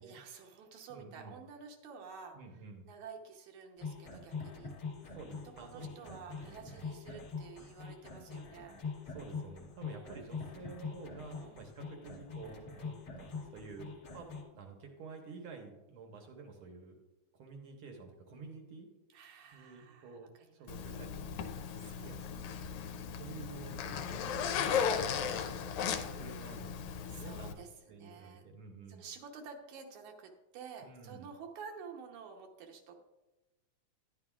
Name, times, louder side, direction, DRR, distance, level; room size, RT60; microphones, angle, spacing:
voice 1, 0.0-2.4 2.9-4.7 5.4-9.0 9.9-10.3 11.4-11.6 19.1-20.7 20.9-21.1 21.8-23.1 27.1-28.4 28.9-33.0, right 6 dB, 80° right, 2 dB, 2.4 m, -51 dB
voice 2, 0.9-1.4 2.3-2.9 5.1-6.9 9.1-14.3 14.5-16.9 17.4-18.9 19.5-21.5 22.0-22.2 23.1-27.6 27.9-29.0 30.8-31.3, right 4 dB, 60° right, 3 dB, 1.5 m, -50 dB
sound 1, 3.8-14.4, left 4 dB, 60° left, 1.0 m, -44 dB
Zipper (clothing), 20.7-27.5, left 7 dB, 80° left, 1.9 m, -36 dB
11.0 x 10.5 x 2.4 m, 1.1 s
omnidirectional pair, 3.4 m